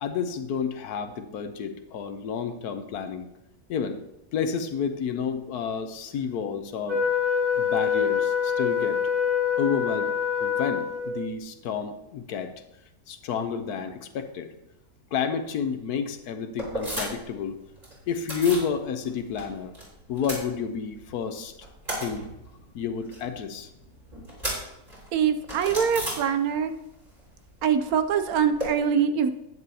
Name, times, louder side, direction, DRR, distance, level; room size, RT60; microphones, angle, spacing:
voice 1, 0.0-3.3 3.7-4.0 4.3-7.1 7.6-9.0 9.6-10.1 10.4-12.5 13.1-14.5 15.1-17.6 18.1-19.7 20.1-21.5 22.0-22.3 22.7-23.7, left 6 dB, 70° left, 9 dB, 1.2 m, -30 dB
Wind instrument woodwind instrument, 6.9-11.3, left 7 dB, 55° right, 1.9 m, -25 dB
sound 1, 16.6-17.4 17.6-18.7 19.0-19.8 20.1-21.1 21.4-26.8 27.1-28.7, right 1 dB, 25° right, 3.7 m, -35 dB
voice 2, 25.1-26.7 27.6-29.3, right 7 dB, 70° right, 10 dB, 1.0 m, -23 dB
11.0 x 9.2 x 2.8 m, 0.89 s
omnidirectional pair, 1.8 m